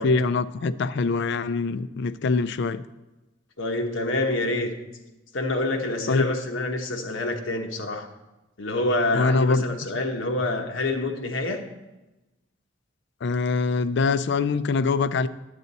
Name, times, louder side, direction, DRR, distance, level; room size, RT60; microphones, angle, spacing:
voice 1, 0.0-2.8 6.1-6.3 9.1-9.8 13.2-15.3, left 4 dB, 65° left, 15 dB, 0.4 m, -24 dB
voice 2, 3.6-4.8 5.3-8.1 8.6-11.6, left 2 dB, 80° left, 4 dB, 1.1 m, -27 dB
10.5 x 8.3 x 4.1 m, 1.0 s
head